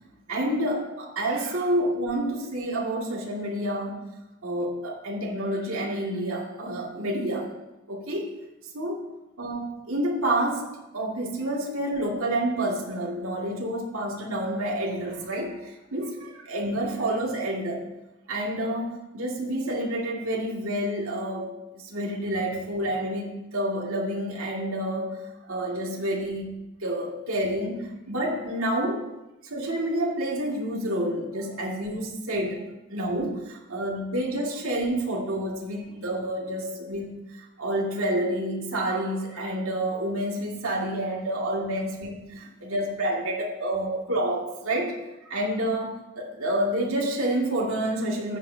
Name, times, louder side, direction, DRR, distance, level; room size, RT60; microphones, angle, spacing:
voice 1, 0.3-4.1 4.4-7.5 7.9-8.3 8.7-9.0 9.4-10.7 10.9-17.8 18.3-25.2 25.5-26.6 26.8-29.0 29.5-32.6 32.9-37.2 37.6-44.9 45.2-48.4, right 1 dB, 70° right, -2 dB, 2.4 m, -29 dB
14.5 x 9.8 x 2.9 m, 0.99 s
head